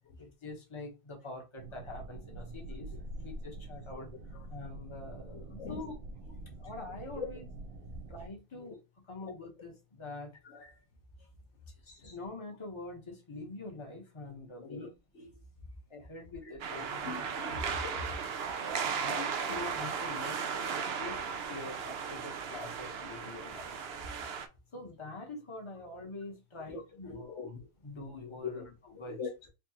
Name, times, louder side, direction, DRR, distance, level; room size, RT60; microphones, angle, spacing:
voice 1, 0.2-2.9 3.2-4.1 4.5-5.9 6.6-7.5 8.1-8.8 9.1-10.3 11.7-14.9 15.9-17.5 18.8-20.4 21.0-21.2 21.5-23.8 24.7-29.2, left 2 dB, 25° left, 1.0 m, -45 dB
sound 1, 1.6-8.3, right 2 dB, 90° right, 1.1 m, -45 dB
voice 2, 5.3-5.8 7.2-7.3 10.4-10.7 11.9-12.1 14.6-14.9 15.1-15.3 17.0-18.1 19.2-19.6 20.6-20.8 26.7-26.8 27.1-27.7 28.4-28.5 28.9-29.5, left 4 dB, 55° left, 1.4 m, -42 dB
sound 2, 16.6-24.5, right 6 dB, 65° right, 0.6 m, -36 dB
4.6 x 2.4 x 2.9 m
omnidirectional pair, 1.5 m